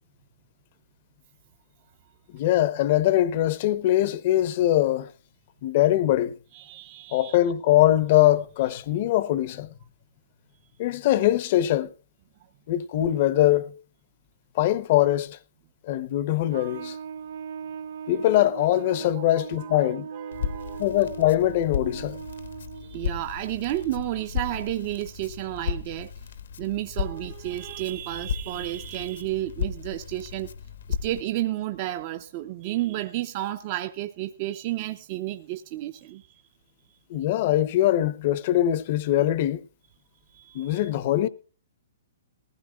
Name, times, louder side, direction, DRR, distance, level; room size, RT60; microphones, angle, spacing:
voice 1, 2.3-5.1 5.6-6.3 7.1-9.7 10.8-11.9 12.7-13.7 14.6-15.4 15.8-17.0 18.1-20.1 20.8-22.2 37.1-39.6 40.5-41.3, left 13 dB, 40° left, 0.7 m, -22 dB
voice 2, 6.5-7.4 19.1-19.2 19.6-20.8 22.8-26.1 26.6-30.5 31.0-36.4 40.3-40.9, right 15 dB, 35° right, 0.6 m, -32 dB
Trumpet, 16.5-23.0, right 7 dB, 85° right, 1.4 m, -38 dB
Crackle, 20.3-31.2, left 6 dB, 75° left, 1.1 m, -35 dB
19.0 x 15.5 x 2.3 m
hypercardioid pair, 155°, 0 cm